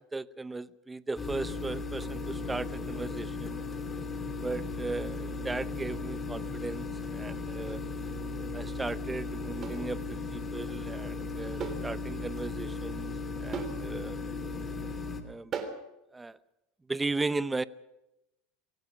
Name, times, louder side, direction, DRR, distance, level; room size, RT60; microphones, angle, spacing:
voice 1, 0.1-3.6 4.4-7.8 8.5-10.0 10.3-13.1 13.4-14.2 15.2-15.5 16.1-16.4 16.9-17.6, right 3 dB, 10° right, 15 dB, 0.8 m, -36 dB
sound 1, 1.2-15.2, left 3 dB, 20° left, 2.7 m, -36 dB
sound 2, 7.7-7.9 9.6-9.9 11.6-11.9 12.2-12.3 13.5-13.8 15.5-15.9, right 6 dB, 30° right, 3.4 m, -37 dB
25.0 x 17.0 x 6.3 m, 0.92 s
supercardioid pair, 130°, 0 cm